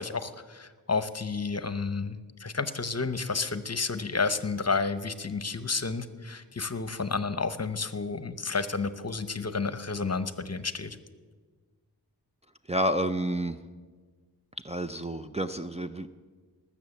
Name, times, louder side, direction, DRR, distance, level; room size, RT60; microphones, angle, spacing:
voice 1, 0.0-11.0, left 4 dB, 40° left, 12 dB, 0.9 m, -31 dB
voice 2, 12.7-13.6 14.6-16.1, right 1 dB, 15° right, 6 dB, 0.5 m, -29 dB
19.5 x 7.3 x 7.2 m, 1.5 s
wide cardioid pair, 45°, 40 cm